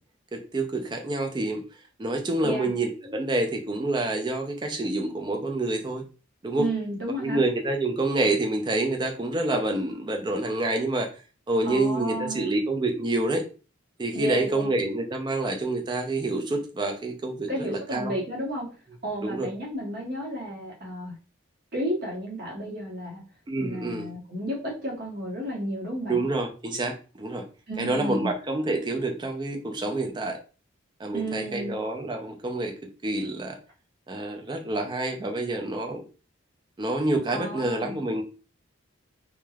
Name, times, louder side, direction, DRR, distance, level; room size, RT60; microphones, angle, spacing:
voice 1, 0.3-1.6 2.0-6.0 6.4-6.7 7.2-11.1 11.5-13.4 14.0-18.1 19.2-19.5 23.5-24.1 26.1-27.4 27.8-30.4 31.0-32.7 33.0-33.6 34.1-36.0 36.8-38.2, right 2 dB, 20° right, 3 dB, 0.4 m, -27 dB
voice 2, 6.6-7.4 11.6-12.6 14.1-14.8 17.5-18.7 19.0-21.1 21.7-23.2 23.6-26.2 27.7-28.3 31.1-31.8 37.3-38.0, right 1 dB, 50° right, -1 dB, 0.9 m, -32 dB
3.1 x 2.2 x 2.3 m, 0.35 s
head